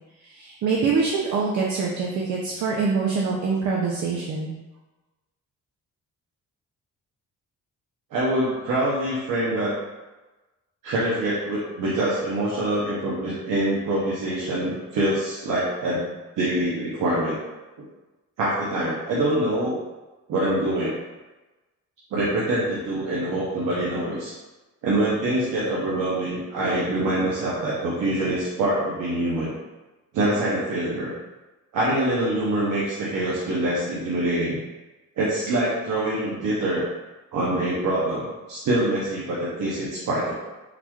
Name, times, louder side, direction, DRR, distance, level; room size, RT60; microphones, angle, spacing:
voice 1, 0.2-4.5, right 4 dB, 65° right, -3 dB, 0.5 m, -24 dB
voice 2, 8.1-9.7 10.8-16.0 16.4-17.3 18.4-19.8 20.3-21.0 22.1-24.3 24.8-29.5 30.1-31.1 31.7-34.6 35.2-36.8 37.3-40.3, right 1 dB, 85° right, -8 dB, 0.8 m, -25 dB
3.9 x 3.0 x 2.3 m, 1.1 s
cardioid pair, 125°, 31 cm